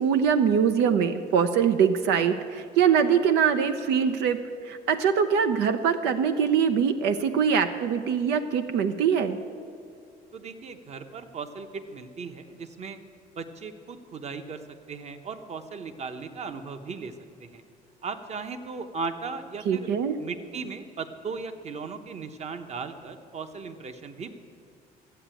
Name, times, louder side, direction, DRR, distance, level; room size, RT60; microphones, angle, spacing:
voice 1, 0.0-4.4 4.6-9.4 19.7-20.2, right 7 dB, 85° right, 9 dB, 0.7 m, -23 dB
voice 2, 10.3-13.0 13.3-14.6 14.9-17.1 17.4-17.6 18.0-19.9 20.2-24.3, right 4 dB, 40° right, 9 dB, 1.0 m, -37 dB
13.5 x 8.3 x 9.0 m, 2.2 s
cardioid pair, 110°, 17 cm